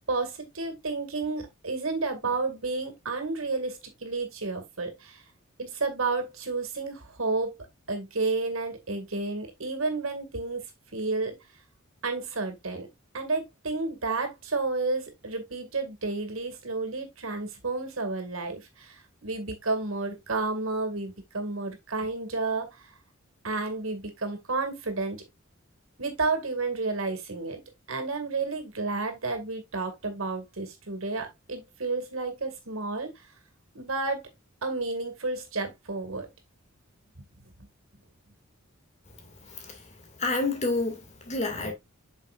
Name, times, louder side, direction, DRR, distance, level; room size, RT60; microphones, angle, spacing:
voice 1, 0.1-5.2 5.6-7.5 7.9-10.6 10.9-11.4 12.0-12.9 13.1-22.8 23.4-25.2 26.0-27.6 27.9-33.1 33.7-34.3 34.6-36.3, right 3 dB, 75° right, 2.2 m, -31 dB
voice 2, 39.5-39.8 40.2-41.7, left 2 dB, 35° left, 2.2 m, -29 dB
8.1 x 6.3 x 2.5 m
head